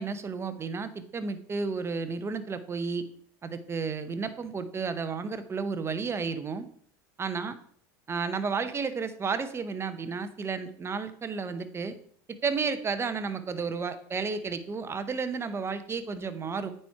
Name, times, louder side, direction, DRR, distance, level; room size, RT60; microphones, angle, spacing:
voice 1, 0.0-3.1 3.4-6.7 7.2-7.6 8.1-11.9 12.3-16.7, right 5 dB, 25° right, 11 dB, 0.9 m, -32 dB
9.3 x 4.4 x 4.6 m, 0.62 s
hypercardioid pair, 90°, 10 cm